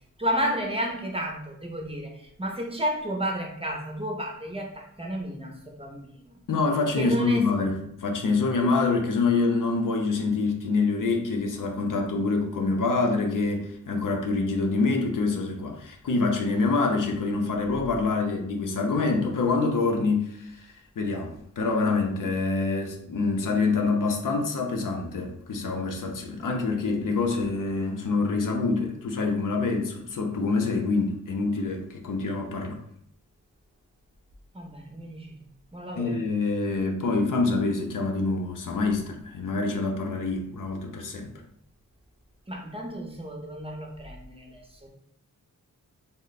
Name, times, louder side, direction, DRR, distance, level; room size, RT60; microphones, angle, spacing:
voice 1, 0.2-2.1 2.4-6.3 7.0-7.5 34.5-35.3 35.7-36.2 42.5-44.9, equal, 20° right, 0 dB, 0.6 m, -32 dB
voice 2, 6.5-32.8 36.0-41.3, left 3 dB, 75° left, 3 dB, 0.7 m, -26 dB
3.2 x 2.1 x 3.9 m, 0.72 s
wide cardioid pair, 135°, 32 cm